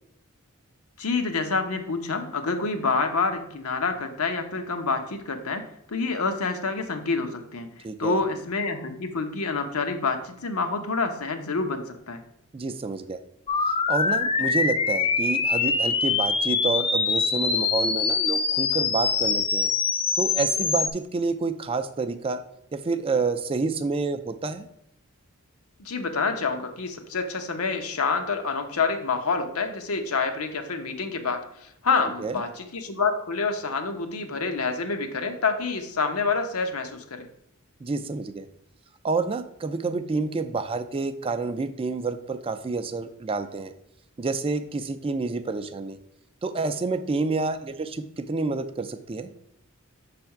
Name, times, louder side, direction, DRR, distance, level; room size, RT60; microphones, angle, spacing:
voice 1, 1.0-7.7 8.0-12.2 25.8-37.3, left 4 dB, 80° left, 7 dB, 0.8 m, -27 dB
voice 2, 7.8-8.2 12.5-13.2 13.7-19.7 20.2-22.4 22.7-24.7 32.2-32.4 37.8-38.5 39.0-43.7 44.2-46.0 46.4-49.3, right 3 dB, 25° right, 9 dB, 0.4 m, -28 dB
sound 1, 13.5-20.9, left 4 dB, 25° left, 0.5 m, -24 dB
6.3 x 3.4 x 5.7 m, 0.76 s
head